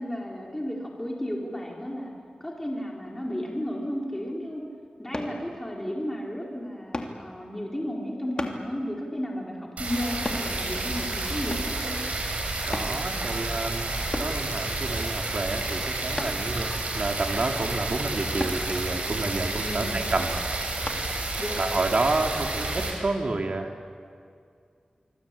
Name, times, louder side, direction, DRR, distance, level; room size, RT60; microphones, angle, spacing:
voice 1, 0.0-2.1 2.4-4.6 5.0-12.0 19.6-20.1 21.4-21.8, equal, 15° left, -2 dB, 4.5 m, -33 dB
sound 1, 5.1-5.4 6.9-7.2 8.4-8.6 10.2-10.5 11.5-11.8 12.7-13.0 14.1-14.4 16.2-16.5 18.4-18.6 20.9-21.0 21.6-21.7, left 2 dB, 35° left, 3.0 m, -32 dB
sound 2, 9.8-22.9, right 2 dB, 75° right, 6.7 m, -30 dB
voice 2, 12.6-20.4 21.6-24.0, right 2 dB, 60° right, 3 dB, 2.7 m, -29 dB
25.5 x 25.0 x 8.6 m, 2.3 s
wide cardioid pair, 85°, 2 cm